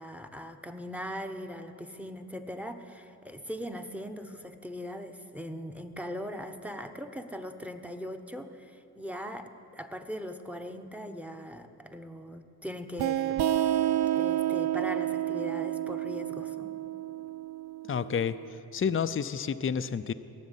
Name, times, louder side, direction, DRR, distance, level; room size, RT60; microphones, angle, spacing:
voice 1, 0.0-13.4 14.1-16.7, equal, 5° right, 8 dB, 1.0 m, -40 dB
sound 1, 13.0-18.4, right 12 dB, 90° right, 0.5 m, -30 dB
voice 2, 17.9-18.4 18.7-20.1, left 7 dB, 35° left, 11 dB, 0.5 m, -29 dB
17.5 x 7.3 x 9.9 m, 3.0 s
cardioid pair, 70°, 38 cm